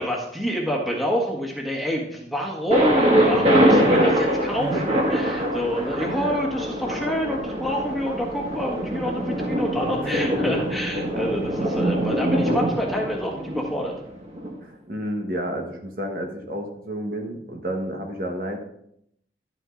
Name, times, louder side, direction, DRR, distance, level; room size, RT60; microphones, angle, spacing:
voice 1, 0.0-13.9, equal, ahead, -3 dB, 1.5 m, -27 dB
Thunder, 2.7-14.5, equal, 35° right, 1.6 m, -23 dB
voice 2, 3.2-3.8 4.5-4.8 6.1-6.4 10.0-10.5 14.6-18.6, right 1 dB, 50° right, 2 dB, 1.2 m, -31 dB
11.5 x 8.8 x 2.6 m, 0.73 s
head